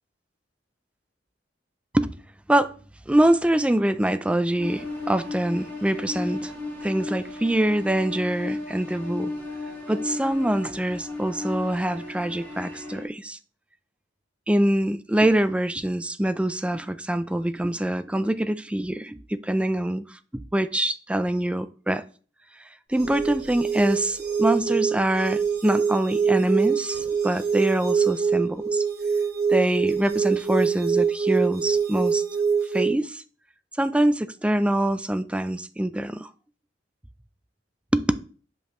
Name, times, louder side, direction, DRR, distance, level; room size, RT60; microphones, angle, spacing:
voice 1, 3.1-6.5 6.8-9.3 9.9-13.4 14.5-22.0 22.9-28.8 29.5-32.2 32.7-33.2 33.8-36.3 37.9-38.1, right 1 dB, 5° right, 0.3 m, -24 dB
sound 1, 4.6-13.0, left 2 dB, 10° left, 2.5 m, -34 dB
sound 2, 22.9-32.9, right 6 dB, 60° right, 1.3 m, -24 dB
8.7 x 5.3 x 3.0 m
head